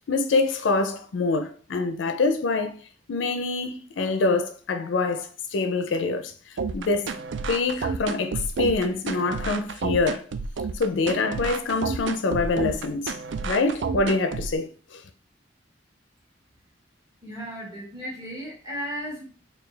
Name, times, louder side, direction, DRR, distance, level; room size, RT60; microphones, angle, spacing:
voice 1, 0.1-2.8 3.1-7.1 7.5-10.3 10.7-13.1 13.4-15.0, left 3 dB, 75° left, 0.4 m, -25 dB
sound 1, 6.6-14.6, right 4 dB, 65° right, 0.4 m, -30 dB
voice 2, 17.2-19.2, equal, 20° right, 1.4 m, -35 dB
4.5 x 2.3 x 3.2 m
head